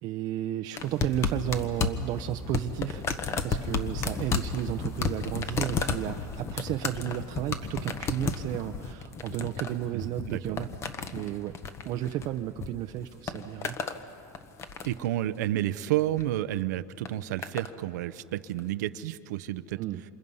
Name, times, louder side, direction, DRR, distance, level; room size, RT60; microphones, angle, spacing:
voice 1, 0.0-3.0 3.4-10.7 11.1-11.6 11.9-13.7 19.8-20.0, right 13 dB, 45° right, 6 dB, 0.7 m, -33 dB
sound 1, 0.8-12.7 13.0-14.0 14.3-15.1 16.0-16.3 17.0-17.7 18.6-18.7, left 5 dB, 30° left, 1.2 m, -33 dB
voice 2, 9.9-10.6 14.8-19.8, right 14 dB, 85° right, 14 dB, 0.7 m, -31 dB
27.5 x 27.5 x 5.5 m, 2.6 s
supercardioid pair, 140°, 9 cm